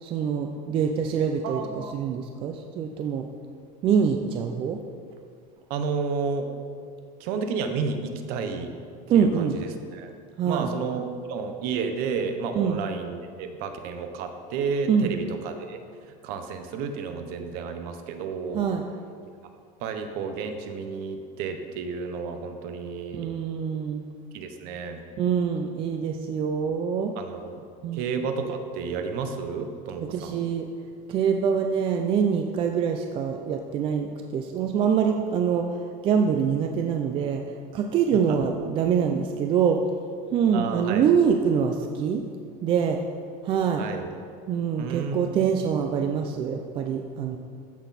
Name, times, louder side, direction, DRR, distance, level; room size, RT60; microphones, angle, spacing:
voice 1, 0.0-3.3 3.8-4.8 9.1-9.6 10.4-10.7 12.6-12.8 14.9-15.1 18.5-18.8 23.1-24.0 25.2-27.1 27.8-28.1 30.1-30.7 31.1-35.8 36.0-39.8 40.3-42.2 42.6-43.0 43.4-43.8 44.5-47.4, right 7 dB, 30° right, 4 dB, 0.4 m, -25 dB
voice 2, 1.4-2.2 5.7-6.5 7.2-8.7 9.1-9.7 9.9-10.1 10.5-15.8 16.2-18.6 19.8-23.3 24.3-25.0 27.2-27.6 27.9-30.4 40.5-41.1 43.8-44.1 44.8-45.7, right 5 dB, 50° right, 7 dB, 1.0 m, -31 dB
14.5 x 6.2 x 4.2 m, 2.2 s
cardioid pair, 165°, 19 cm